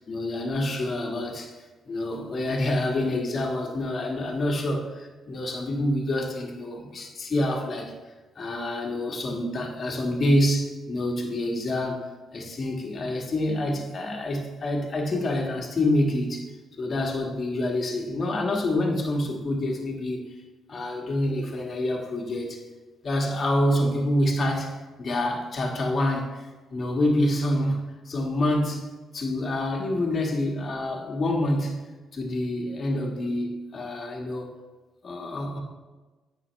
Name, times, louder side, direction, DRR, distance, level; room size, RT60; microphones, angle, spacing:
voice 1, 0.1-1.5 1.8-7.9 8.3-12.0 12.3-16.4 16.8-20.2 20.7-22.6 23.0-28.8 29.1-31.8 32.1-34.5 35.0-35.6, left 1 dB, 45° left, 0 dB, 1.5 m, -27 dB
8.6 x 5.8 x 3.1 m, 1.2 s
cardioid pair, 90°, 0 cm